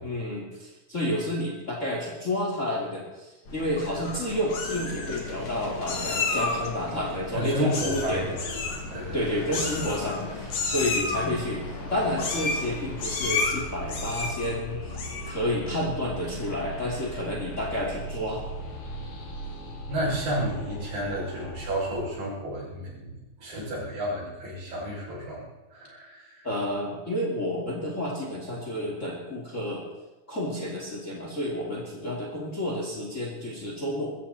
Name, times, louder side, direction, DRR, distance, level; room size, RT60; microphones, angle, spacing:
voice 1, 0.0-8.3 9.1-11.6 11.9-15.0 15.3-18.4 26.4-29.8 30.3-34.1, left 1 dB, 20° left, -2 dB, 2.9 m, -30 dB
sound 1, 3.4-22.0, left 1 dB, 40° left, 3.0 m, -38 dB
Meow, 3.8-4.2 4.5-5.2 5.9-6.7 7.7-8.1 8.4-8.8 9.5-10.2 10.5-11.2 12.2-12.7 13.0-13.5 13.9-14.5 14.9-15.3, left 4 dB, 65° left, 4.0 m, -30 dB
voice 2, 7.3-9.4 19.9-26.5, equal, 70° right, -6 dB, 8.6 m, -32 dB
23.5 x 14.5 x 4.3 m, 1.1 s
omnidirectional pair, 4.1 m